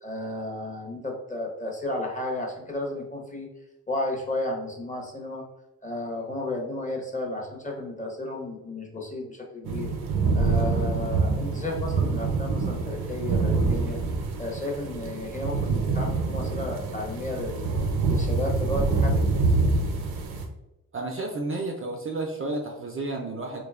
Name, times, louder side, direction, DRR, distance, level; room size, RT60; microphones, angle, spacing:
voice 1, 0.0-3.5 3.9-5.4 5.8-9.9 10.3-14.0 14.4-17.7 18.1-19.2, left 1 dB, 20° left, 0 dB, 0.7 m, -33 dB
sound 1, 9.6-20.5, right 3 dB, 85° right, 0.6 m, -26 dB
voice 2, 20.9-23.6, right 2 dB, 35° right, 2 dB, 0.4 m, -31 dB
2.6 x 2.2 x 2.3 m, 0.93 s
cardioid pair, 60°, 38 cm